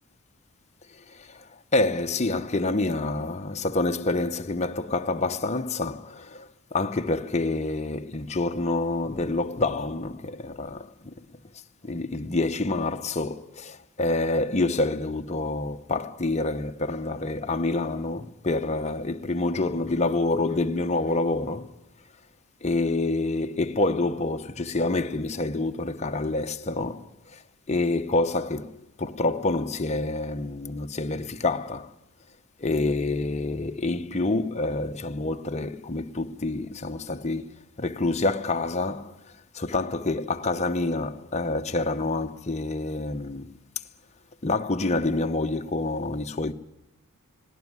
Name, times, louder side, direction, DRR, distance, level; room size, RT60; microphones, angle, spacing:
voice 1, 1.0-1.5 1.7-11.1 11.8-21.7 22.6-27.4 27.7-31.9 32.6-37.5 37.8-39.2 39.5-43.6 44.4-46.5, left 2 dB, 30° left, 0.9 m, -27 dB
19.5 x 17.5 x 9.6 m
head